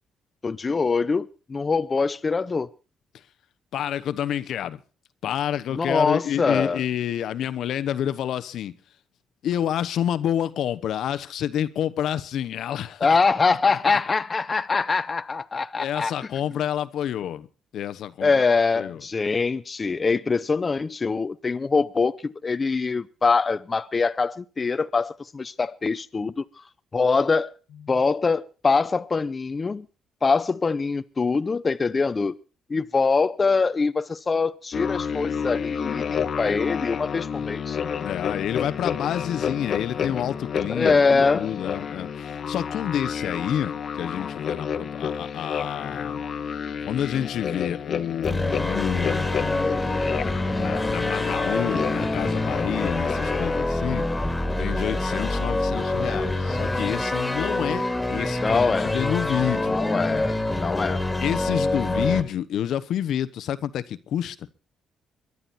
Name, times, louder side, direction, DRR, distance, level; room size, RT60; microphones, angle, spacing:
voice 1, 0.4-2.7 5.7-6.8 13.0-16.1 18.2-26.4 26.9-27.5 27.9-29.9 30.2-32.4 32.7-37.8 40.7-41.5 58.4-58.9 59.7-61.0, left 4 dB, 30° left, 0.7 m, -23 dB
voice 2, 3.7-4.8 5.2-8.8 9.4-13.2 13.7-14.0 15.8-17.5 17.7-18.4 18.7-19.0 38.0-46.2 46.8-50.0 50.6-54.0 54.6-60.2 61.2-64.5, left 10 dB, 75° left, 0.9 m, -29 dB
sound 1, 34.7-53.7, left 7 dB, 55° left, 1.2 m, -30 dB
sound 2, 48.2-62.2, left 2 dB, 10° left, 2.5 m, -26 dB
22.5 x 11.0 x 4.2 m
cardioid pair, 90°, 0 cm